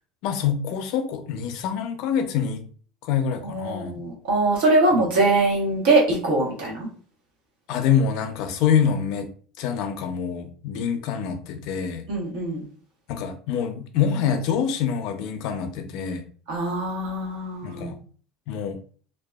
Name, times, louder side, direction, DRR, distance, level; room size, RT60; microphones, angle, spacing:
voice 1, 0.2-2.7 3.0-4.0 7.7-9.3 9.6-12.0 13.1-16.2 17.6-18.0 18.5-18.8, left 7 dB, 55° left, 8 dB, 0.4 m, -25 dB
voice 2, 3.4-6.9 12.1-12.7 16.5-17.9, right 2 dB, 90° right, -3 dB, 1.2 m, -22 dB
2.6 x 2.2 x 2.3 m, 0.44 s
cardioid pair, 175°, 0 cm